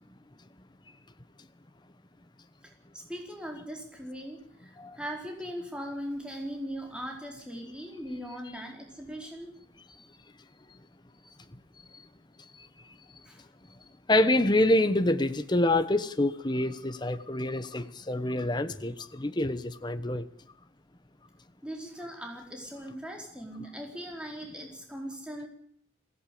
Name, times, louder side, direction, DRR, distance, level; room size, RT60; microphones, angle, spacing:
voice 1, 2.6-9.5 13.3-13.4 21.6-25.5, equal, 5° right, 4.4 m, -39 dB
voice 2, 14.1-20.2, left 1 dB, 20° left, 1.0 m, -26 dB
22.0 x 16.5 x 8.6 m
head